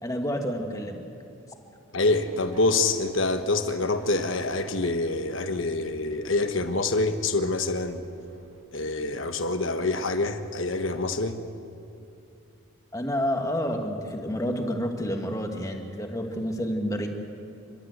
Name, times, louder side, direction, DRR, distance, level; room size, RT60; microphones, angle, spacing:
voice 1, 0.0-1.0 12.9-17.1, equal, 15° left, 3 dB, 1.7 m, -29 dB
voice 2, 1.9-8.0 8.7-11.4, left 2 dB, 60° left, 8 dB, 1.3 m, -26 dB
sound 1, 2.0-8.6, right 1 dB, 60° right, 3.2 m, -47 dB
29.0 x 13.0 x 8.0 m, 2.6 s
head